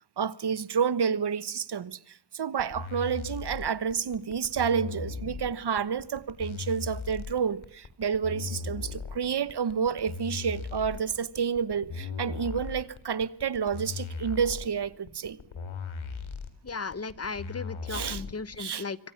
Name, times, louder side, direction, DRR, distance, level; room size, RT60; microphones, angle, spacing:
voice 1, 0.2-15.4 17.9-18.2 18.6-18.8, right 7 dB, 60° right, 1.2 m, -29 dB
sound 1, 2.6-18.6, left 5 dB, 80° left, 4.3 m, -38 dB
voice 2, 16.6-19.0, left 4 dB, 30° left, 1.0 m, -36 dB
25.5 x 25.0 x 7.2 m
wide cardioid pair, 135°, 47 cm